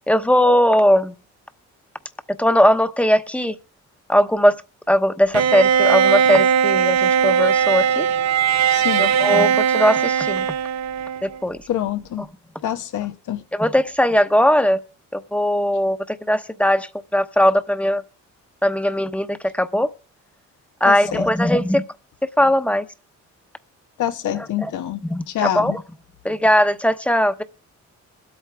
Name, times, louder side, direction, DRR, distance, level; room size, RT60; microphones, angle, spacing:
voice 1, 0.1-1.1 2.4-3.5 4.1-4.6 4.9-8.1 9.0-10.5 11.2-11.6 13.5-14.8 15.1-18.0 18.6-19.9 20.8-21.8 22.2-22.8 24.3-24.7 25.1-25.8 26.2-27.4, equal, 5° left, 1.0 m, -19 dB
Bowed string instrument, 5.3-11.4, right 8 dB, 65° right, 0.7 m, -19 dB
voice 2, 8.7-9.1 11.7-12.2 12.6-13.4 20.9-21.2 24.0-25.0 25.3-25.8, left 11 dB, 80° left, 1.2 m, -25 dB
23.5 x 8.4 x 3.5 m
cardioid pair, 90°, 30 cm